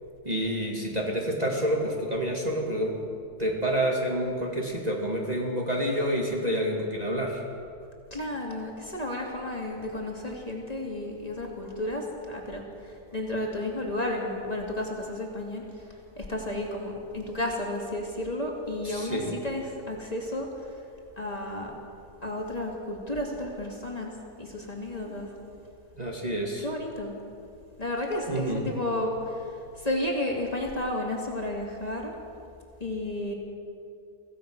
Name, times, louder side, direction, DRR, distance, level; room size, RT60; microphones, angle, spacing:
voice 1, 0.2-3.1 3.4-7.4 18.8-19.4 26.0-26.7 28.3-28.7, equal, 25° right, -2 dB, 2.2 m, -28 dB
voice 2, 8.1-20.5 21.2-21.7 22.2-24.1 24.4-25.4 26.6-27.1 27.8-32.1 32.8-33.3, left 1 dB, 25° left, -1 dB, 3.0 m, -32 dB
25.0 x 16.5 x 6.4 m, 2.5 s
omnidirectional pair, 1.7 m